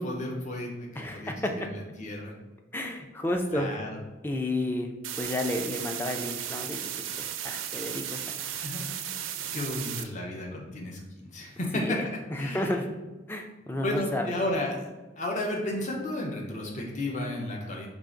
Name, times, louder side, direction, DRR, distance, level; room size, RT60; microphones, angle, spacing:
voice 1, 0.0-2.3 3.5-3.9 8.5-8.9 9.4-12.0 12.4-12.7 13.8-14.9 15.2-17.9, left 1 dB, 40° left, -1 dB, 0.7 m, -33 dB
voice 2, 1.0-1.5 2.7-3.7 4.2-4.9 5.2-6.8 7.2-8.5 11.7-12.9 13.3-14.3, left 1 dB, 10° left, 3 dB, 0.3 m, -31 dB
sound 1, 5.0-10.0, right 10 dB, 85° right, 0.4 m, -35 dB
4.7 x 2.4 x 3.8 m, 1.2 s
head